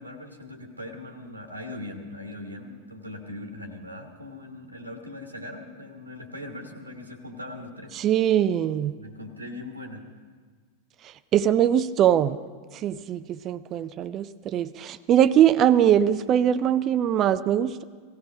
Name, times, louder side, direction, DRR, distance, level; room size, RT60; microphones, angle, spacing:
voice 1, 0.0-8.0 9.0-10.1, left 1 dB, 85° right, 3 dB, 1.3 m, -40 dB
voice 2, 7.9-8.9 11.0-12.4 12.7-17.8, right 10 dB, 30° right, 14 dB, 0.4 m, -22 dB
17.0 x 16.0 x 5.1 m, 1.5 s
figure-of-eight pair, 90°, 0 cm